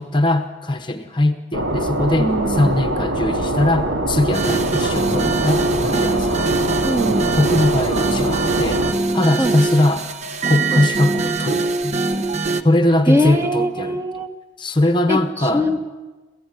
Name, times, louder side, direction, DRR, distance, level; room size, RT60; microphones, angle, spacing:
voice 1, 0.0-6.5 7.4-8.8 9.1-10.1 10.4-12.1 12.6-14.0 14.6-15.6, left 1 dB, 25° left, 7 dB, 1.0 m, -20 dB
sound 1, 1.5-8.9, right 1 dB, 80° right, 3.0 m, -23 dB
voice 2, 2.2-2.8 6.8-7.3 9.4-9.6 10.7-10.8 13.1-14.3 15.1-15.9, equal, 15° right, 5 dB, 1.4 m, -22 dB
sound 2, 4.3-12.6, right 3 dB, 35° right, 0.9 m, -22 dB
27.5 x 15.5 x 9.2 m, 1.3 s
head